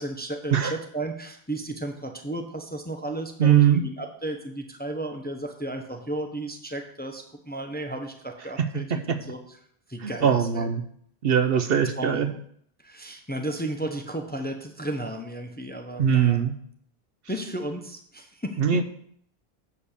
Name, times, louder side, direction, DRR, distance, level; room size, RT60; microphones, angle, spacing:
voice 1, 0.0-9.4 9.9-10.6 12.0-12.4 12.8-16.4 17.3-18.8, right 1 dB, 10° left, 4 dB, 0.7 m, -34 dB
voice 2, 3.4-3.8 8.6-9.2 10.0-10.8 11.2-12.3 16.0-16.5 18.6-18.8, right 8 dB, 65° right, 8 dB, 0.9 m, -21 dB
7.2 x 5.2 x 6.6 m, 0.65 s
omnidirectional pair, 1.1 m